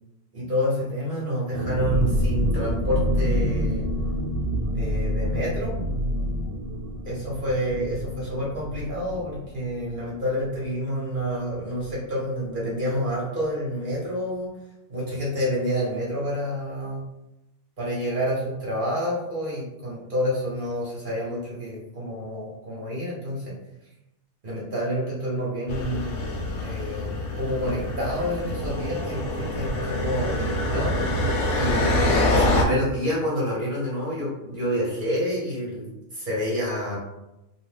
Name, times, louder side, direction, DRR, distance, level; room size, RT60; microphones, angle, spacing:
voice 1, 0.3-3.9 4.7-5.8 7.0-14.5 14.9-17.0 17.8-23.5 24.4-27.1 27.4-31.0 31.5-37.0, equal, 45° right, -6 dB, 0.8 m, -28 dB
sound 1, 1.5-10.9 11.2-11.3 11.6-11.9, equal, 90° right, 1.1 m, -27 dB
sound 2, 25.7-32.7, left 1 dB, 70° left, 0.8 m, -25 dB
2.7 x 2.0 x 3.2 m, 0.93 s
omnidirectional pair, 1.5 m